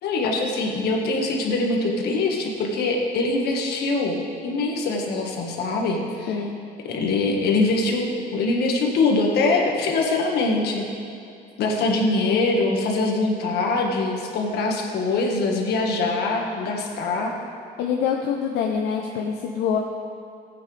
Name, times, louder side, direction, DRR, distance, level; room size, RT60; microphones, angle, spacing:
voice 1, 0.0-4.2 4.4-6.4 6.8-10.9 11.6-17.3, left 3 dB, 75° left, 1 dB, 1.7 m, -23 dB
voice 2, 17.8-19.8, left 7 dB, 90° left, 1 dB, 0.8 m, -25 dB
16.0 x 8.8 x 3.4 m, 2.4 s
cardioid pair, 110°, 17 cm